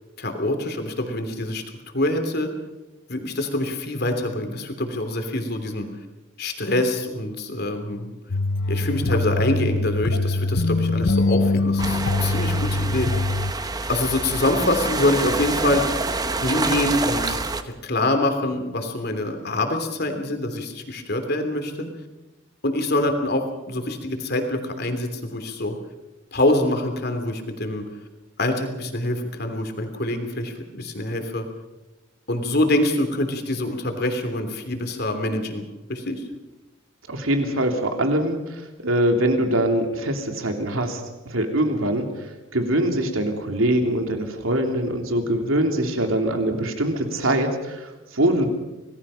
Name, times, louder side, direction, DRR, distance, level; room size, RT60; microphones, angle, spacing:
voice 1, 0.2-1.6 1.9-2.5 3.1-5.9 6.4-8.1 8.7-13.1 13.9-15.8 16.4-17.4 17.6-21.9 22.6-25.8 26.3-27.8 28.4-31.5 32.3-36.2, left 1 dB, 50° left, 6 dB, 3.1 m, -25 dB
sound 1, 8.3-13.5, left 2 dB, 70° left, 0.8 m, -23 dB
sound 2, 11.8-17.6, right 3 dB, 20° right, 1.0 m, -27 dB
voice 2, 37.1-42.1 42.5-48.5, right 1 dB, 85° right, 4 dB, 3.1 m, -23 dB
26.5 x 19.0 x 5.7 m, 1.1 s
head